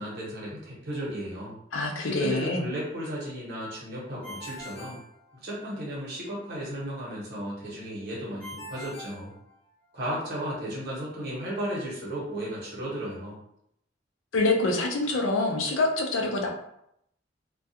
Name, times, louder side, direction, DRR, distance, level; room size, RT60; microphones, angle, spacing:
voice 1, 0.0-1.6 2.0-5.0 5.4-9.3 9.9-13.3, equal, 55° right, -5 dB, 1.1 m, -34 dB
voice 2, 1.7-2.6 14.3-16.5, left 2 dB, 85° left, 1 dB, 0.5 m, -26 dB
Ringtone, 4.2-5.9 8.4-10.0, left 1 dB, 5° left, 0.8 m, -43 dB
2.3 x 2.2 x 2.7 m, 0.76 s
head